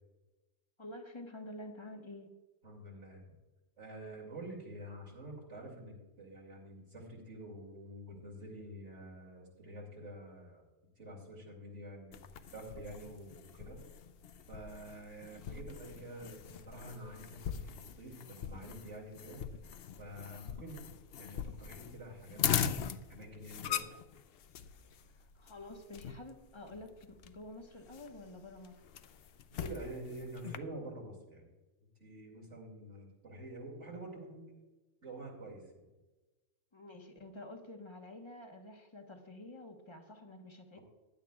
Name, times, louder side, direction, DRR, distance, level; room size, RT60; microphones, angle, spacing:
voice 1, 0.8-2.3 25.3-28.8 36.7-40.8, left 1 dB, 25° left, 3 dB, 1.2 m, -49 dB
voice 2, 2.6-3.2 3.8-10.6 11.0-12.2 12.5-13.8 14.5-19.4 20.0-20.8 21.2-22.4 23.1-23.8 29.6-31.4 32.0-34.5 35.0-35.6 40.7-40.8, right 1 dB, 65° right, -4 dB, 2.9 m, -47 dB
sound 1, 12.1-30.6, left 8 dB, 60° left, 0.7 m, -41 dB
15.5 x 10.5 x 2.4 m, 1.2 s
omnidirectional pair, 1.4 m